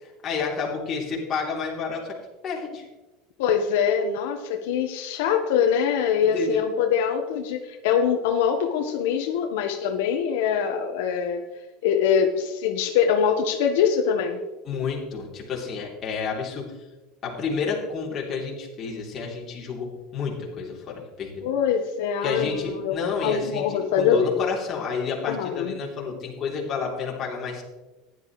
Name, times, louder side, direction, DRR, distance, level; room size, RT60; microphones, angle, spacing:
voice 1, 0.0-2.2 2.4-2.8 6.3-6.6 14.6-16.7 17.2-21.5 22.2-27.6, left 5 dB, 30° left, -2 dB, 3.1 m, -30 dB
voice 2, 3.4-11.4 11.8-14.4 21.4-22.9 23.2-24.3 25.3-25.7, left 7 dB, 80° left, 4 dB, 1.1 m, -23 dB
15.5 x 11.0 x 3.1 m, 1.1 s
cardioid pair, 160°, 0 cm